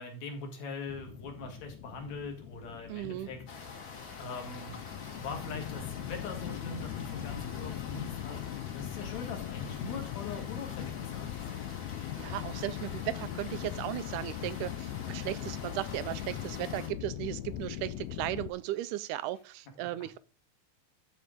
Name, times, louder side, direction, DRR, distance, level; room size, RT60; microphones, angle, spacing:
voice 1, 0.0-3.4 4.2-4.8 5.1-11.5, left 4 dB, 60° left, 2.9 m, -42 dB
sound 1, 0.9-18.5, left 13 dB, 85° left, 1.6 m, -40 dB
voice 2, 2.9-3.3 12.2-20.2, right 14 dB, 80° right, 1.9 m, -36 dB
sound 2, 3.5-16.9, left 3 dB, 40° left, 1.5 m, -47 dB
11.5 x 4.5 x 5.0 m
omnidirectional pair, 3.9 m